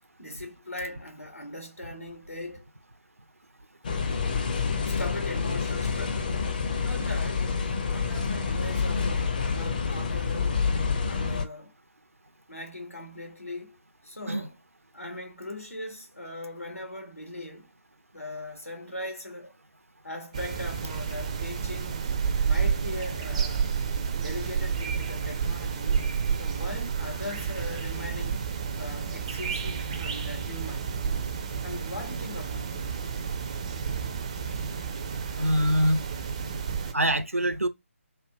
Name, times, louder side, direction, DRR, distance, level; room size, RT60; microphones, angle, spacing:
voice 1, 0.2-2.7 4.8-6.5 6.8-7.5 7.8-10.6 11.1-11.7 12.5-14.5 14.9-17.7 18.1-19.5 20.0-22.0 22.4-23.7 24.2-26.0 26.4-28.4 28.8-31.1 31.6-32.9, left 1 dB, 90° left, 1.4 m, -40 dB
sound 1, 3.8-11.4, left 5 dB, 35° left, 0.5 m, -28 dB
sound 2, 20.3-36.9, right 6 dB, 25° right, 0.4 m, -30 dB
voice 2, 35.3-36.0 36.9-37.7, equal, 80° right, 0.6 m, -24 dB
3.3 x 2.1 x 3.5 m
figure-of-eight pair, 150°, 8 cm